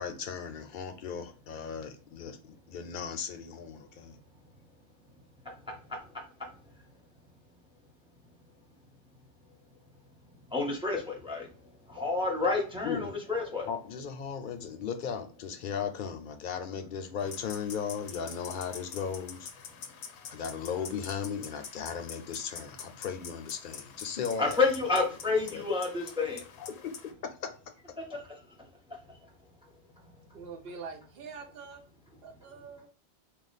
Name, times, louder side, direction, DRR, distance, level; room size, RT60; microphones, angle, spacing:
voice 1, 0.0-4.2 12.0-12.1 12.8-13.2 13.7-19.5 20.3-24.6 25.5-25.6 26.6-27.7, left 7 dB, 55° left, 0.6 m, -37 dB
voice 2, 10.5-11.5 11.9-13.7 24.4-26.4 28.1-28.2, left 3 dB, 5° right, 0.6 m, -29 dB
sound 1, 17.2-27.1, left 6 dB, 80° left, 0.9 m, -46 dB
voice 3, 30.3-31.9 32.2-32.9, right 5 dB, 65° right, 0.9 m, -44 dB
3.2 x 2.3 x 3.9 m
omnidirectional pair, 1.1 m